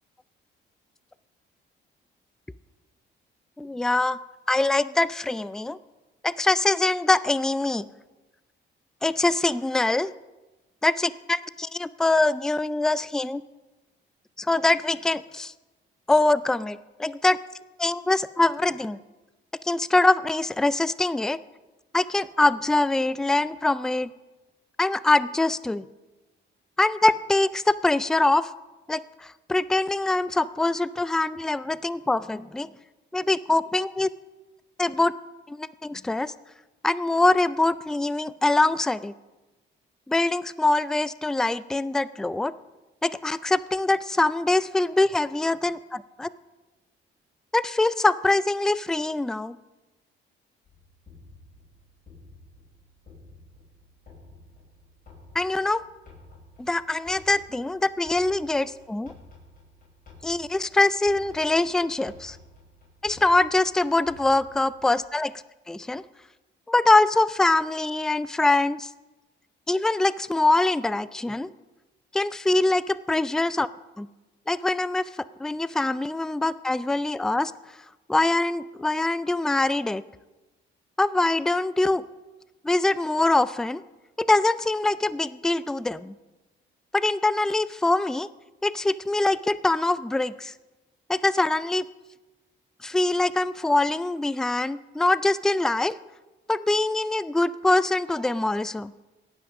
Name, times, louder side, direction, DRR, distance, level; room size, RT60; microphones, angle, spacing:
voice 1, 3.6-4.2 4.5-5.8 6.2-7.9 9.0-10.1 10.8-13.4 14.4-15.5 16.1-17.4 17.8-19.0 19.6-21.4 21.9-24.1 24.8-25.8 26.8-28.5 28.9-32.7 33.1-34.1 34.8-35.1 35.5-36.3 36.8-39.1 40.1-42.5 43.0-46.3 47.5-49.6 55.3-55.8 56.6-59.1 60.2-62.4 63.0-65.3 65.7-66.0 66.7-68.9 69.7-71.5 72.1-73.7 74.0-74.1 74.5-77.5 78.1-80.0 81.0-82.0 82.6-83.8 84.2-86.1 86.9-88.3 88.6-90.5 91.1-91.9 92.8-96.0 96.5-98.9, left 2 dB, 5° left, 17 dB, 0.3 m, -23 dB
sound 1, 50.6-65.0, left 2 dB, 45° left, 5.3 m, -52 dB
17.5 x 6.2 x 5.9 m, 1.1 s
cardioid pair, 90°, 20 cm